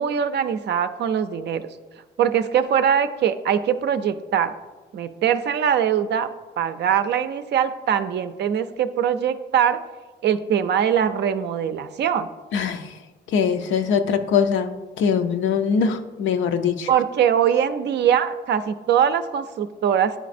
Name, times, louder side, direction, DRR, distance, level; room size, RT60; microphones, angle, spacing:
voice 1, 0.0-1.6 2.2-4.5 4.9-6.3 6.6-9.8 10.2-12.3 16.9-20.2, right 8 dB, 60° right, 11 dB, 0.5 m, -22 dB
voice 2, 12.5-12.9 13.3-16.9, left 6 dB, 75° left, 8 dB, 0.5 m, -22 dB
10.0 x 4.1 x 2.5 m, 1.2 s
cardioid pair, 90°, 20 cm